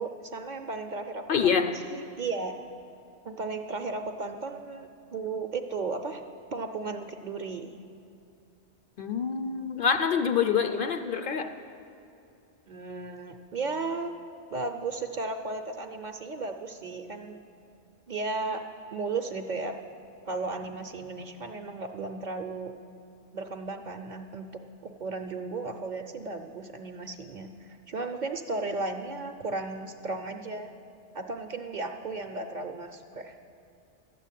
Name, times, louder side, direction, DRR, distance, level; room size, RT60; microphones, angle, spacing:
voice 1, 0.0-1.5 1.9-2.5 3.2-6.2 6.5-7.7 12.7-14.1 14.5-17.4 18.1-18.6 18.9-19.8 20.3-22.7 23.3-30.7 31.1-33.4, right 3 dB, 50° right, 5 dB, 0.7 m, -35 dB
voice 2, 1.3-1.7 9.0-11.5, left 6 dB, 60° left, 8 dB, 0.7 m, -26 dB
12.0 x 7.6 x 9.0 m, 2.6 s
omnidirectional pair, 1.1 m